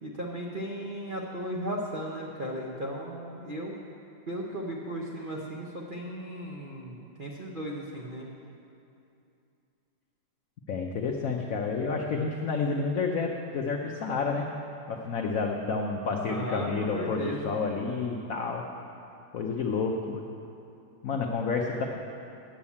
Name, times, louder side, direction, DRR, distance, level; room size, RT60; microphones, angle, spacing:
voice 1, 0.0-3.8 4.3-8.3 16.2-17.6, right 1 dB, 75° right, -2 dB, 0.4 m, -36 dB
voice 2, 10.7-14.5 14.9-18.6 19.3-20.2 21.0-21.8, left 4 dB, 80° left, 1 dB, 0.7 m, -30 dB
8.7 x 8.4 x 7.1 m, 2.7 s
omnidirectional pair, 2.3 m